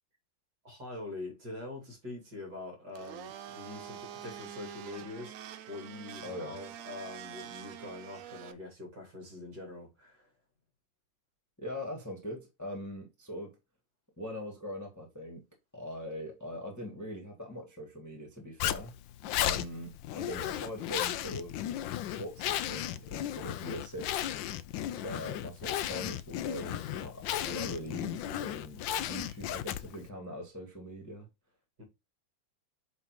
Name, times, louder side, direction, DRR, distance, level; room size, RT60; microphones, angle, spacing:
voice 1, 0.6-10.3 31.8-31.9, left 2 dB, 55° right, 3.4 m, -44 dB
Domestic sounds home sounds, 2.9-8.5, right 9 dB, 75° right, 0.7 m, -46 dB
voice 2, 6.2-6.6 11.6-13.5 14.2-15.4 15.7-18.9 19.4-21.6 22.1-24.4 25.0-31.3, equal, 10° left, 1.6 m, -41 dB
Zipper (clothing), 18.6-30.1, left 12 dB, 80° left, 1.3 m, -35 dB
8.2 x 3.2 x 4.7 m
omnidirectional pair, 2.1 m